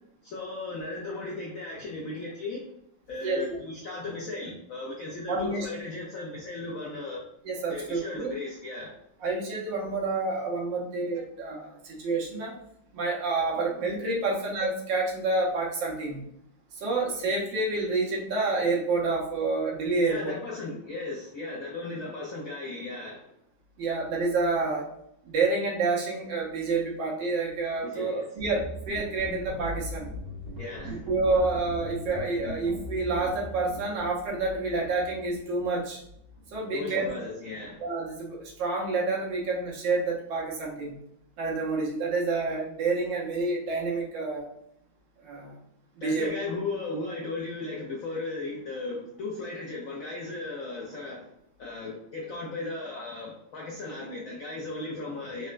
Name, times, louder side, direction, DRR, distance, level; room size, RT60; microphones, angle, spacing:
voice 1, 0.2-2.6 3.1-7.2 7.7-8.9 20.1-23.3 27.8-28.3 30.6-31.1 36.7-37.8 46.0-51.3 51.6-55.5, left 2 dB, 80° left, -2 dB, 0.7 m, -36 dB
voice 2, 5.3-5.7 7.4-8.4 9.2-12.5 12.9-16.3 16.7-20.3 23.8-24.9 25.2-30.1 31.1-36.0 36.5-37.4 37.8-41.0 41.4-44.5 45.2-45.6 46.0-46.3, right 3 dB, 80° right, -2 dB, 1.4 m, -28 dB
sound 1, 28.4-37.8, equal, 55° right, 1.4 m, -40 dB
4.0 x 2.1 x 2.4 m, 0.75 s
omnidirectional pair, 2.0 m